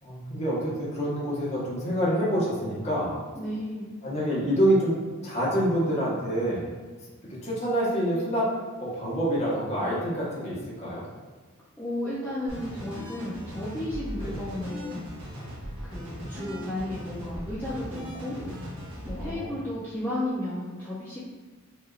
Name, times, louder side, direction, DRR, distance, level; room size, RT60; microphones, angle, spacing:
voice 1, 0.0-3.1 4.0-5.0 5.2-6.7 7.3-8.5 8.8-11.0 14.2-14.3 18.4-18.5 19.2-19.6, equal, 30° left, -8 dB, 1.3 m, -27 dB
voice 2, 3.4-3.9 11.8-15.0 15.8-18.4 19.0-21.2, left 1 dB, 10° left, -10 dB, 0.6 m, -33 dB
sound 1, 12.5-19.3, equal, 70° right, 1.4 m, -38 dB
5.4 x 2.7 x 2.5 m, 1.4 s
head